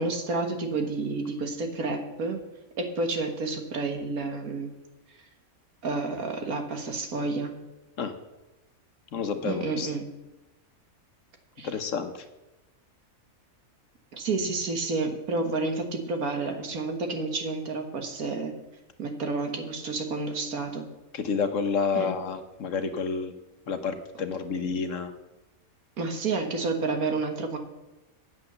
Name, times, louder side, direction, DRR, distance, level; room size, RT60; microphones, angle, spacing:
voice 1, 0.0-2.4 2.8-4.7 5.8-7.5 9.4-10.1 11.6-11.7 14.1-18.5 19.0-20.9 21.9-22.1 26.0-27.6, right 3 dB, 75° right, 5 dB, 1.9 m, -30 dB
voice 2, 9.1-9.9 11.6-12.2 21.1-23.3 23.7-25.1, left 5 dB, 60° left, 8 dB, 1.2 m, -29 dB
8.7 x 8.0 x 6.8 m, 1.0 s
omnidirectional pair, 1.5 m